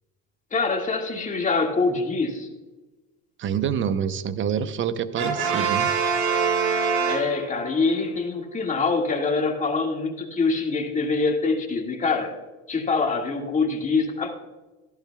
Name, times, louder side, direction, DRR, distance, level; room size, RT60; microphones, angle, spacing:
voice 1, 0.5-2.5 7.1-12.4 12.7-14.3, left 4 dB, 20° left, 2 dB, 2.0 m, -24 dB
voice 2, 3.4-6.0, right 8 dB, 35° right, 12 dB, 0.8 m, -26 dB
Brass instrument, 5.2-7.8, right 6 dB, 85° right, 2.4 m, -24 dB
14.0 x 11.5 x 2.3 m, 1.1 s
supercardioid pair, 115°, 33 cm